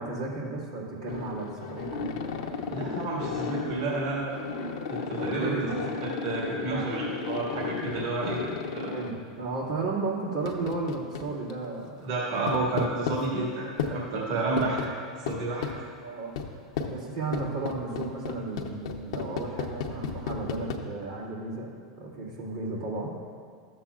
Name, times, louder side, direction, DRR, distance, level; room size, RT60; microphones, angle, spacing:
voice 1, 0.0-2.2 5.2-5.8 6.7-7.0 8.9-12.1 14.4-14.7 16.0-16.3 16.9-23.1, right 3 dB, 85° right, -7 dB, 2.1 m, -34 dB
sound 1, 1.1-9.1 10.5-11.5 12.5-13.2 13.8-13.9 14.6-14.9 15.3-15.8 16.4-16.5 16.8-16.9 17.3-20.8, left 5 dB, 70° left, 0.7 m, -33 dB
voice 2, 2.7-4.3 4.9-5.6 6.0-8.4 8.7-8.9 12.0-14.8 15.3-15.7, right 3 dB, 65° right, -5 dB, 1.9 m, -30 dB
12.5 x 7.4 x 2.4 m, 2.3 s
hypercardioid pair, 95°, 3 cm